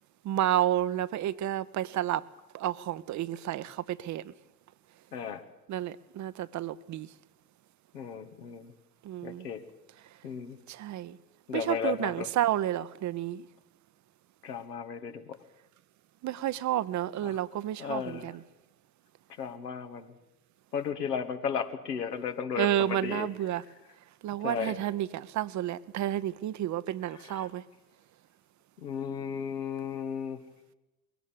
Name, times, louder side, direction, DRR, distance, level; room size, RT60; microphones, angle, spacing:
voice 1, 0.2-2.2 2.5-4.3 5.7-7.1 9.0-9.5 10.7-11.2 11.5-13.5 16.2-18.4 22.6-23.6 24.2-27.6, right 12 dB, 35° right, 0.8 m, -31 dB
voice 2, 7.9-8.7 9.2-9.6 10.2-10.6 11.5-12.3 14.4-15.4 17.3-17.4 17.8-18.3 19.4-20.1 20.7-23.3 24.4-24.7 27.3-27.5 28.8-30.4, left 7 dB, 80° left, 1.7 m, -34 dB
21.5 x 17.5 x 8.6 m
figure-of-eight pair, 65°, 47 cm